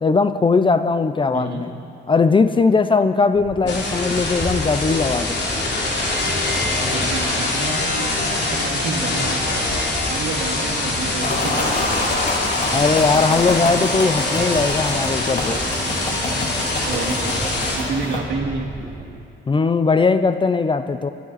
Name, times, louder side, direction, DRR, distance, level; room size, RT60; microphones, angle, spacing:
voice 1, 0.0-1.7 2.1-5.4 12.7-15.6 19.5-21.1, left 4 dB, 25° left, 11 dB, 0.5 m, -19 dB
voice 2, 1.3-1.6 6.8-12.2 16.8-18.7, right 4 dB, 65° right, 1 dB, 2.3 m, -30 dB
sound 1, 3.3-19.1, right 1 dB, 25° right, 2.2 m, -33 dB
sound 2, 3.7-17.8, left 2 dB, 60° left, 3.2 m, -24 dB
sound 3, 11.2-18.2, left 2 dB, 40° left, 2.2 m, -28 dB
22.0 x 12.0 x 4.1 m, 2.5 s
cardioid pair, 90°, 20 cm